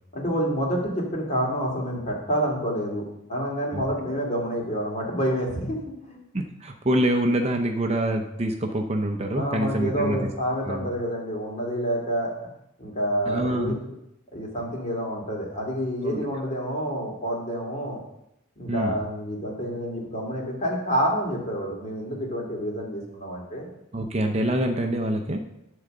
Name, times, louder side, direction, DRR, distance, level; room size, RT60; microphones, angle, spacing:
voice 1, 0.1-3.0 3.3-6.2 9.4-12.3 12.8-13.8 14.3-18.0 18.6-23.7, equal, 35° left, -2 dB, 2.4 m, -28 dB
voice 2, 6.3-10.2 10.7-10.9 13.3-13.7 16.0-16.2 18.7-19.0 23.9-25.5, right 1 dB, 30° right, 4 dB, 0.6 m, -25 dB
11.0 x 3.8 x 6.6 m, 0.83 s
head